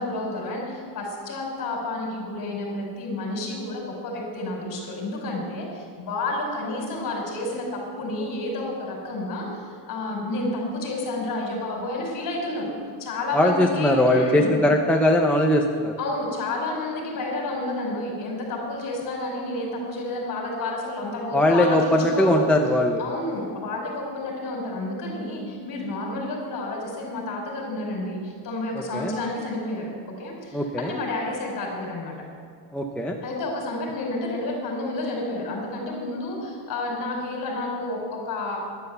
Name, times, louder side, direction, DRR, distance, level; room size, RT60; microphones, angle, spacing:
voice 1, 0.0-12.7 13.0-14.6 16.0-22.5 23.0-32.1 33.2-38.6, left 2 dB, 40° left, -1 dB, 5.0 m, -30 dB
voice 2, 13.3-15.9 21.3-23.0 28.7-29.1 30.5-30.9 32.7-33.2, left 1 dB, 5° left, 1 dB, 0.4 m, -20 dB
13.5 x 11.0 x 7.9 m, 2.1 s
cardioid pair, 175°, 49 cm